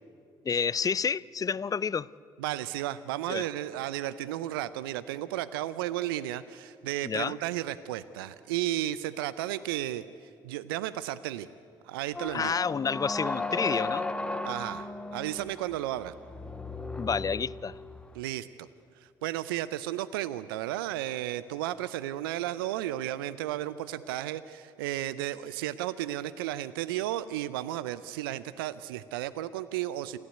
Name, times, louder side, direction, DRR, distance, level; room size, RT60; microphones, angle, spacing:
voice 1, 0.4-2.1 3.3-3.4 7.0-7.4 12.3-14.1 17.0-17.8, left 6 dB, 30° left, 0.5 m, -29 dB
voice 2, 2.4-11.5 11.8-12.5 14.5-14.9 15.1-16.1 18.1-18.7 19.0-30.2, right 13 dB, 80° right, 0.5 m, -33 dB
sound 1, 12.1-18.1, left 2 dB, 10° left, 1.4 m, -35 dB
28.5 x 12.0 x 9.3 m
hypercardioid pair, 50°, 12 cm